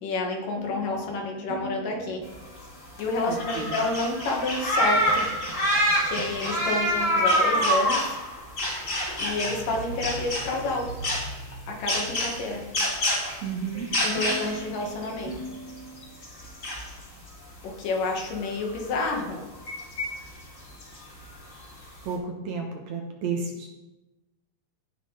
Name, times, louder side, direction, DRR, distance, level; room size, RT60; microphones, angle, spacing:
voice 1, 0.0-2.2 3.0-5.3 6.0-8.2 9.2-10.9 11.7-12.6 14.0-15.3 17.6-19.4, left 2 dB, 70° left, 1 dB, 3.1 m, -29 dB
sound 1, 0.6-3.2 4.8-7.8 9.2-16.5, right 2 dB, 85° right, 3.4 m, -42 dB
sound 2, 2.4-2.5 2.6-2.7 3.0-9.7 9.9-11.3 11.9-13.4 13.8-15.7 16.0-17.0 17.3-17.4 18.0-18.1 18.6-18.8 19.5-20.3 20.8-21.2, equal, 25° left, 2.1 m, -26 dB
voice 2, 3.3-3.8 13.4-13.9 22.1-23.7, right 5 dB, 65° right, 2 dB, 2.2 m, -32 dB
17.0 x 5.9 x 3.9 m, 1.0 s
omnidirectional pair, 3.9 m